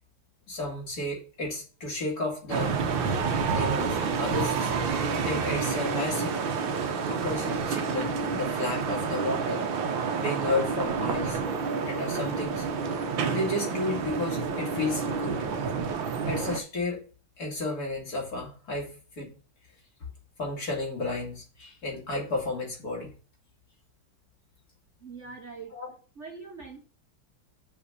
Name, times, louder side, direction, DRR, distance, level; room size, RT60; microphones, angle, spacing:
voice 1, 0.5-2.9 3.5-4.7 5.2-6.4 7.1-9.7 10.2-11.4 11.8-12.7 13.3-15.5 16.3-17.0 17.4-19.3 20.4-23.1 25.7-25.9, left 2 dB, 50° left, 2.8 m, -32 dB
sound 1, 2.5-16.6, right 5 dB, 70° right, 1.6 m, -29 dB
voice 2, 25.0-25.7 26.2-26.8, right 4 dB, 45° right, 1.2 m, -42 dB
6.2 x 5.0 x 6.7 m
omnidirectional pair, 2.2 m